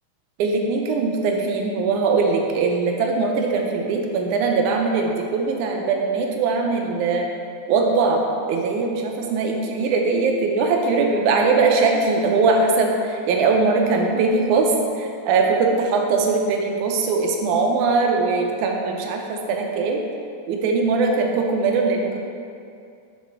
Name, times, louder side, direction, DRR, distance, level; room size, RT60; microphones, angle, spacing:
voice 1, 0.4-7.3 7.7-8.2 8.5-20.0 20.5-22.2, right 4 dB, 85° right, 2 dB, 2.1 m, -21 dB
7.3 x 6.6 x 3.4 m, 2.4 s
omnidirectional pair, 3.5 m